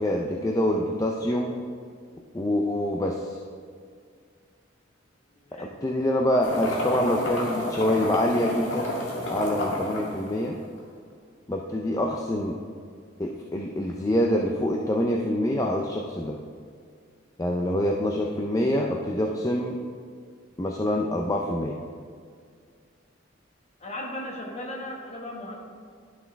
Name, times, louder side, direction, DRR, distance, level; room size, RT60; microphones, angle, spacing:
voice 1, 0.0-1.6 2.3-3.4 5.5-8.9 9.3-10.6 11.5-12.6 13.2-16.4 17.4-19.8 20.6-21.8, left 1 dB, 20° left, 1 dB, 0.4 m, -26 dB
voice 2, 5.3-5.7 23.8-25.6, left 1 dB, 35° left, -1 dB, 1.3 m, -36 dB
sound 1, 6.4-10.8, left 1 dB, 80° left, 1.8 m, -30 dB
11.0 x 6.1 x 3.4 m, 2.1 s
head